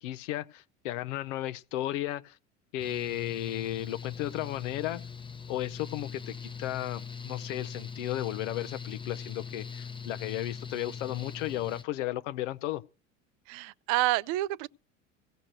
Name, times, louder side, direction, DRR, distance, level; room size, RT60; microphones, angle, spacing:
voice 1, 0.0-2.4 2.7-5.0 5.5-12.8, left 14 dB, 70° left, 0.7 m, -34 dB
Mechanical fan, 2.8-11.8, left 6 dB, 15° left, 0.8 m, -41 dB
voice 2, 13.5-14.7, right 17 dB, 55° right, 0.5 m, -28 dB
16.0 x 6.1 x 6.6 m
hypercardioid pair, 75°, 38 cm